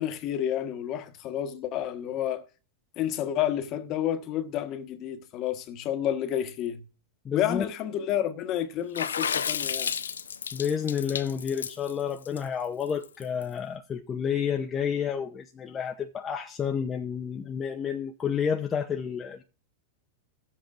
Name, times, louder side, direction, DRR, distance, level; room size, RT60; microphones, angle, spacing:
voice 1, 0.0-2.4 3.0-6.8 7.3-9.9, left 11 dB, 45° left, 1.3 m, -30 dB
voice 2, 7.2-7.6 10.5-19.4, left 7 dB, 25° left, 0.8 m, -30 dB
Water / Splash splatter, 8.9-13.4, left 7 dB, 90° left, 0.5 m, -32 dB
17.0 x 7.8 x 2.4 m
hypercardioid pair, 105°, 0 cm